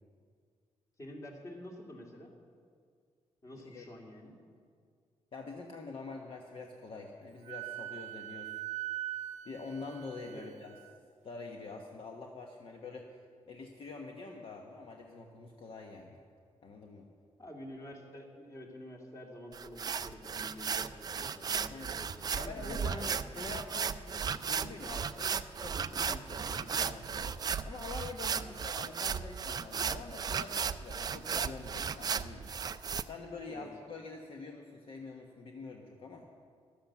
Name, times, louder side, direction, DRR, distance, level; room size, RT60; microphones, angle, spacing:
voice 1, 1.0-2.4 3.4-4.4 10.3-10.5 17.4-23.1 24.1-24.3 28.3-28.6 33.5-33.7, equal, 30° left, 0 dB, 2.6 m, -48 dB
voice 2, 5.3-8.6 9.4-10.7 11.2-13.1 13.5-16.2 16.6-17.1 21.7-21.9 22.4-27.4 27.6-32.5 33.1-36.3, left 3 dB, 50° left, 1 dB, 1.2 m, -46 dB
Wind instrument woodwind instrument, 7.5-10.9, right 14 dB, 85° right, 0.6 m, -41 dB
sound 1, 19.5-33.0, right 6 dB, 35° right, 0.4 m, -35 dB
14.0 x 12.0 x 7.3 m, 2.1 s
wide cardioid pair, 145°, 12 cm